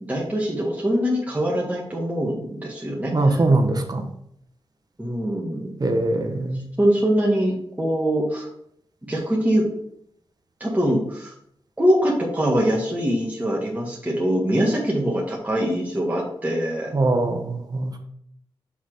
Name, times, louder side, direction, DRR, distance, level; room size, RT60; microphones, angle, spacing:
voice 1, 0.1-3.4 5.0-5.7 6.8-8.5 9.0-9.7 10.6-11.3 11.8-16.9, equal, 15° right, -4 dB, 1.8 m, -23 dB
voice 2, 3.1-4.1 5.8-6.6 16.9-18.0, right 2 dB, 40° right, 5 dB, 1.1 m, -22 dB
5.8 x 4.2 x 5.0 m, 0.71 s
cardioid pair, 50°, 10 cm